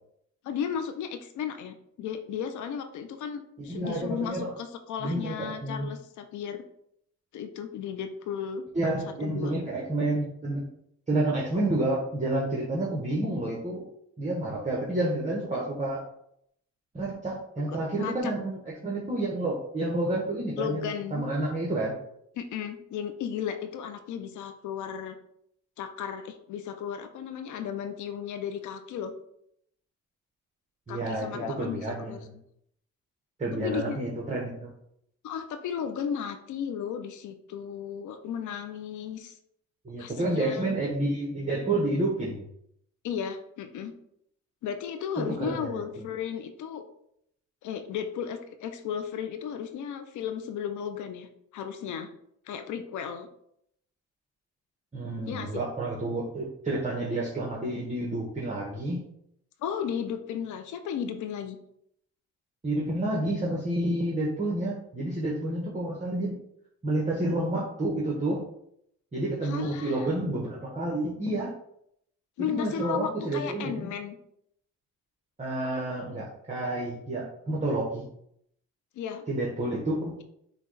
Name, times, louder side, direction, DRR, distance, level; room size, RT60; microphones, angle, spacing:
voice 1, 0.4-6.6 7.3-8.6 9.2-9.6 18.0-18.3 20.6-21.2 22.4-25.2 25.8-29.1 30.9-32.2 33.5-34.0 35.2-39.3 40.0-40.8 43.0-43.9 44.6-46.9 47.6-52.1 52.5-53.3 55.3-55.6 59.6-61.6 69.4-70.1 72.4-74.2 79.0-79.3, left 8 dB, 75° left, 8 dB, 0.6 m, -34 dB
voice 2, 3.6-4.5 5.0-5.9 8.7-10.6 11.1-13.8 14.2-16.0 16.9-21.9 30.9-32.1 33.4-34.7 39.8-42.4 45.2-46.0 54.9-59.0 62.6-66.3 66.8-68.4 69.1-71.5 72.5-73.9 75.4-78.0 79.3-80.2, right 1 dB, 25° right, -3 dB, 1.1 m, -29 dB
5.7 x 2.3 x 4.0 m, 0.73 s
cardioid pair, 90°, 30 cm